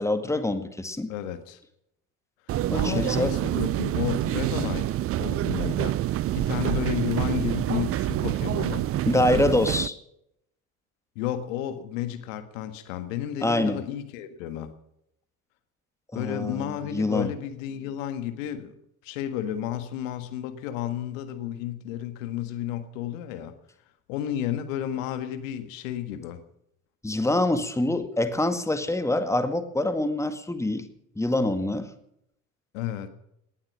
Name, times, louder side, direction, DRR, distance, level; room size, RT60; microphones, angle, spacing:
voice 1, 0.0-1.1 2.7-3.3 9.1-10.0 13.4-13.8 16.1-17.3 27.0-30.8 31.2-31.9, left 2 dB, 5° left, 10 dB, 2.0 m, -25 dB
voice 2, 1.1-1.6 2.5-4.9 5.2-6.0 6.3-8.9 11.2-14.7 16.1-18.7 19.0-23.5 24.1-26.4 32.7-33.1, left 11 dB, 65° left, 10 dB, 1.7 m, -32 dB
sound 1, 2.5-9.9, right 14 dB, 35° right, 0.5 m, -27 dB
18.5 x 12.0 x 6.2 m, 0.76 s
figure-of-eight pair, 60°, 42 cm